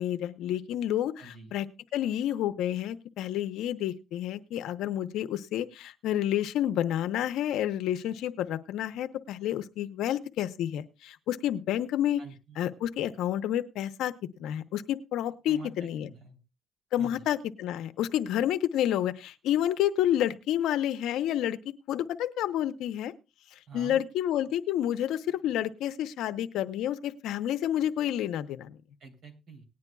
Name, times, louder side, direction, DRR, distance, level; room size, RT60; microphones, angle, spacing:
voice 1, 0.0-1.7 1.9-12.2 12.6-14.1 14.4-16.1 16.9-21.6 21.9-23.1 23.7-28.8, left 11 dB, 85° left, 11 dB, 0.7 m, -29 dB
voice 2, 1.2-1.5 12.2-12.6 15.5-16.4 17.0-17.3 23.7-24.0 29.0-29.6, right 5 dB, 75° right, 2 dB, 3.2 m, -47 dB
19.0 x 9.6 x 2.3 m, 0.27 s
cardioid pair, 90°, 0 cm